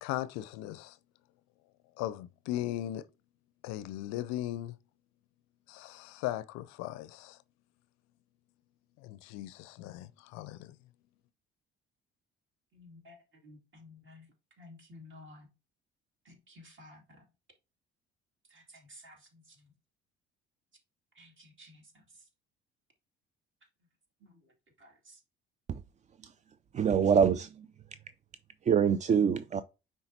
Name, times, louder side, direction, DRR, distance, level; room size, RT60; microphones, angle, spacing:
voice 1, 0.0-1.0 2.0-3.1 3.6-4.7 5.7-7.4 9.0-10.8, left 14 dB, 60° left, 0.5 m, -38 dB
voice 2, 12.7-14.3 14.6-15.5 16.2-17.2 18.5-19.7 21.1-22.3 24.2-24.5 24.8-25.2, left 2 dB, 40° right, 2.5 m, -54 dB
voice 3, 26.7-27.7 28.7-29.6, right 7 dB, 25° right, 0.4 m, -25 dB
9.5 x 3.6 x 2.8 m
hypercardioid pair, 55°, 30 cm